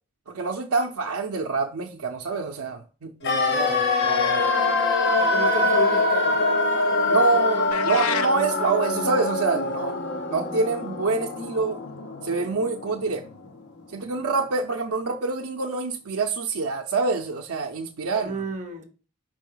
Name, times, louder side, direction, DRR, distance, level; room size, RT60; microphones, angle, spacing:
voice 1, 0.3-4.4 7.1-10.0 10.3-11.8 12.2-13.2 13.9-18.4, right 4 dB, 90° right, 0.6 m, -26 dB
sound 1, 3.2-13.2 13.4-13.5, left 3 dB, 50° left, 1.0 m, -24 dB
voice 2, 5.2-6.4 18.2-18.8, right 4 dB, 35° right, 1.1 m, -32 dB
sound 2, 7.7-8.3, left 7 dB, 85° left, 0.6 m, -28 dB
5.3 x 5.0 x 3.8 m
head